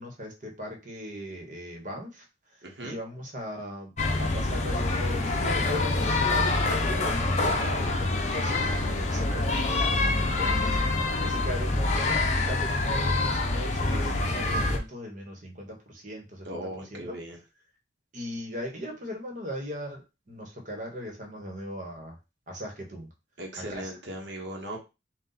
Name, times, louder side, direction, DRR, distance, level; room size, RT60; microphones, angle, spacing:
voice 1, 0.0-2.2 2.5-10.8 11.2-12.2 12.5-17.2 18.1-22.2 22.5-23.1 23.6-24.0, equal, 45° right, 2 dB, 1.3 m, -38 dB
voice 2, 2.6-3.0 16.4-17.4 23.4-24.8, right 1 dB, 75° right, 1 dB, 1.1 m, -38 dB
sound 1, 4.0-14.8, left 2 dB, 40° left, 0.7 m, -26 dB
4.1 x 2.4 x 4.0 m, 0.27 s
head